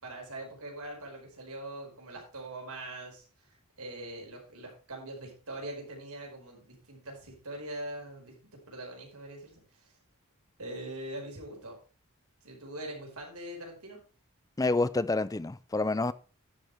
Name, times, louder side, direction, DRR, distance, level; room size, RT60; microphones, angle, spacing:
voice 1, 0.0-8.3 8.7-9.9 10.6-11.8 12.4-14.0, right 1 dB, 85° right, 5.0 m, -42 dB
voice 2, 14.6-16.1, left 2 dB, 15° left, 0.4 m, -28 dB
11.0 x 9.0 x 3.4 m
head